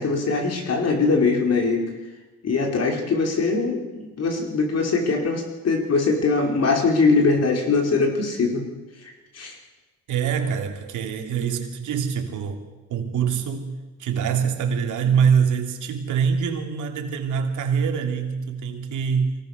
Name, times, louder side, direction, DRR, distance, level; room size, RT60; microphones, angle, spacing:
voice 1, 0.0-1.9 2.4-8.7 9.3-9.5, left 4 dB, 55° left, 2 dB, 4.9 m, -22 dB
voice 2, 10.1-12.6 12.9-13.7 14.0-19.4, right 7 dB, 80° right, 3 dB, 3.1 m, -24 dB
24.0 x 17.5 x 6.7 m, 1.2 s
cardioid pair, 90°, 30 cm